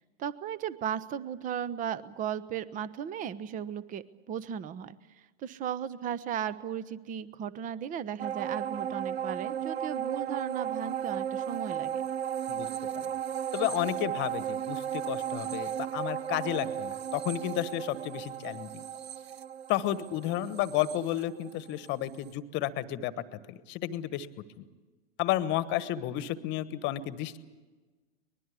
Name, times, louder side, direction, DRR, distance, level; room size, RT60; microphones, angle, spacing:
voice 1, 0.0-5.0 5.4-12.0, right 9 dB, 25° right, 17 dB, 1.0 m, -36 dB
sound 1, 8.2-21.9 22.3-22.4, right 9 dB, 65° right, 1.0 m, -35 dB
voice 2, 13.5-18.8 19.7-23.1 23.5-24.3 24.6-24.7 25.2-27.4, left 13 dB, 35° left, 15 dB, 1.4 m, -32 dB
23.5 x 21.0 x 8.4 m, 1.3 s
hypercardioid pair, 115°, 34 cm